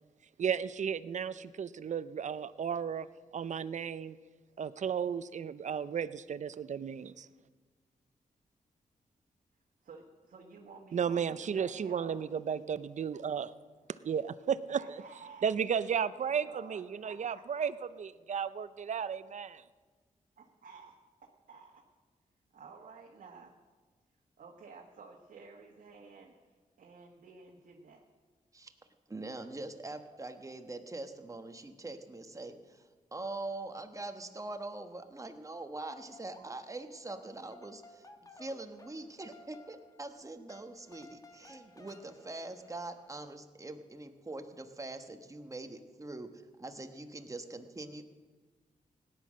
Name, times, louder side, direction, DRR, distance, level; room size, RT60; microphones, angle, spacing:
voice 1, 0.4-3.1 3.3-4.2 4.6-7.3 10.9-13.5 13.9-14.8 15.4-19.6, right 7 dB, 60° right, 15 dB, 0.6 m, -34 dB
voice 2, 9.8-12.3 14.7-15.5 16.2-17.7 20.4-20.9 21.2-21.8 22.5-23.5 24.4-26.5 26.8-28.0, right 4 dB, 75° right, -1 dB, 1.5 m, -53 dB
voice 3, 29.1-38.1 38.3-48.0, right 2 dB, 25° right, 7 dB, 1.2 m, -43 dB
sound 1, 35.6-36.8 37.1-43.2, left 2 dB, 25° left, 1.3 m, -57 dB
17.5 x 10.0 x 6.3 m, 1.4 s
wide cardioid pair, 95°, 14 cm